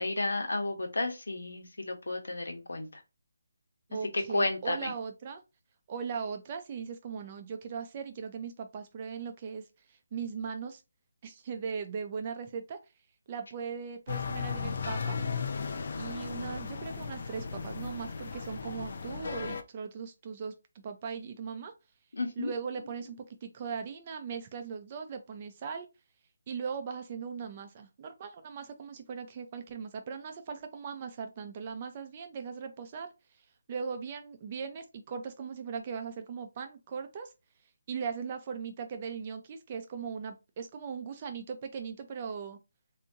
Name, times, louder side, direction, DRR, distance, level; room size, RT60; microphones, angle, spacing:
voice 1, 0.0-2.9 4.1-4.9 22.1-22.5, left 2 dB, 85° left, 1.2 m, -32 dB
voice 2, 3.9-5.4 5.9-10.8 11.2-12.8 13.3-15.2 16.0-21.7 22.4-25.9 26.5-33.1 33.7-37.3 37.9-42.6, right 6 dB, 30° right, 0.6 m, -39 dB
sound 1, 14.1-19.6, left 5 dB, 55° left, 0.5 m, -36 dB
3.5 x 2.7 x 2.7 m
hypercardioid pair, 165°, 0 cm